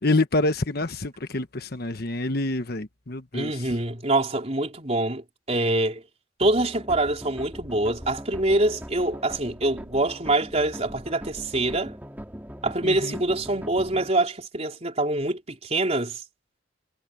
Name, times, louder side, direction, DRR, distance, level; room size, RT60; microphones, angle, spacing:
voice 1, 0.0-3.7 12.8-13.2, left 2 dB, 55° left, 1.2 m, -27 dB
voice 2, 3.3-6.0 6.4-12.0 12.6-16.2, right 2 dB, 35° right, 4.1 m, -25 dB
sound 1, 6.4-14.1, equal, 10° right, 4.1 m, -40 dB
head